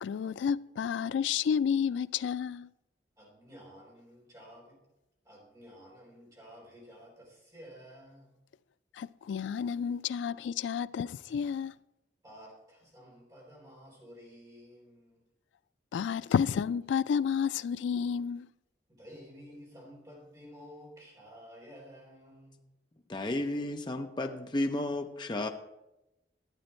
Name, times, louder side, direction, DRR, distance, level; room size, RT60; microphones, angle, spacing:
voice 1, 0.0-2.7 8.9-11.7 15.9-18.5, left 7 dB, 90° left, 0.3 m, -30 dB
voice 2, 3.2-4.8 5.2-8.3 12.2-15.2 18.9-22.6, equal, 20° right, 3.9 m, -52 dB
voice 3, 23.1-25.5, left 1 dB, 25° left, 0.5 m, -32 dB
12.0 x 8.8 x 4.4 m
head